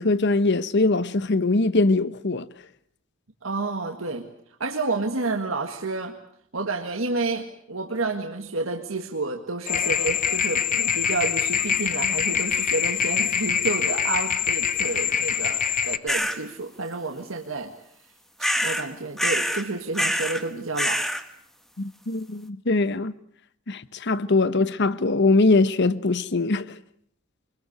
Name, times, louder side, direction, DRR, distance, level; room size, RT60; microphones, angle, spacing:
voice 1, 0.0-2.5 21.8-23.1 23.7-26.8, left 3 dB, 60° left, 1.0 m, -22 dB
voice 2, 3.4-4.3 4.6-6.2 6.5-17.7 18.4-21.0, right 3 dB, 75° right, 1.8 m, -30 dB
sound 1, 9.7-16.0, left 8 dB, 40° left, 1.0 m, -24 dB
sound 2, 16.1-16.4 18.4-18.9 19.2-19.6 19.9-20.4 20.8-21.2, equal, ahead, 1.5 m, -25 dB
24.5 x 21.5 x 8.0 m
head